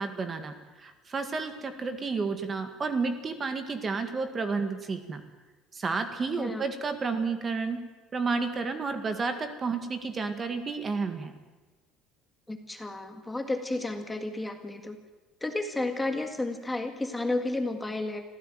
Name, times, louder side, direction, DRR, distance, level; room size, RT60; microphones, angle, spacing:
voice 1, 0.0-5.2 5.7-7.8 8.1-11.3, right 4 dB, 25° right, 8 dB, 1.9 m, -31 dB
voice 2, 12.5-15.0 15.4-18.2, left 2 dB, 10° left, 6 dB, 1.8 m, -32 dB
26.0 x 15.5 x 9.2 m, 1.2 s
cardioid pair, 155°, 0 cm